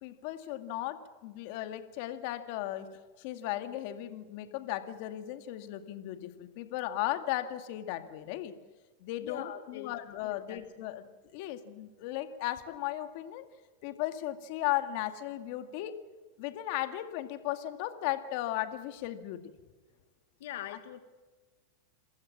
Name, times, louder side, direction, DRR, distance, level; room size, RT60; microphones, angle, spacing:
voice 1, 0.0-8.5 9.0-11.0 11.3-13.5 13.8-16.0 16.4-19.4, left 14 dB, 55° left, 9 dB, 2.1 m, -36 dB
voice 2, 9.2-10.0 10.2-10.6 15.8-15.9 20.4-21.0, left 11 dB, 75° left, 8 dB, 1.7 m, -42 dB
27.5 x 15.5 x 7.3 m, 1.3 s
supercardioid pair, 135°, 0 cm